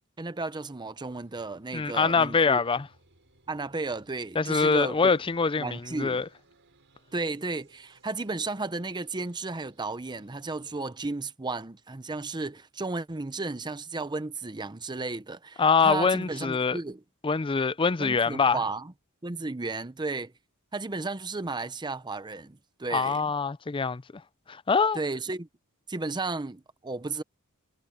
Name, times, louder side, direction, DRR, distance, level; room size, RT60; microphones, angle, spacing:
voice 1, 0.2-2.6 3.5-5.1 5.6-6.2 7.1-17.0 18.0-18.9 19.2-20.3 20.7-23.2 24.9-25.5 25.9-27.2, right 3 dB, 20° right, 0.7 m, -34 dB
sound 1, 1.1-10.9, right 2 dB, 55° right, 5.7 m, -63 dB
voice 2, 1.7-2.9 4.4-6.3 15.6-16.8 17.2-18.6 22.9-24.2 24.5-25.0, left 5 dB, 25° left, 0.4 m, -24 dB
head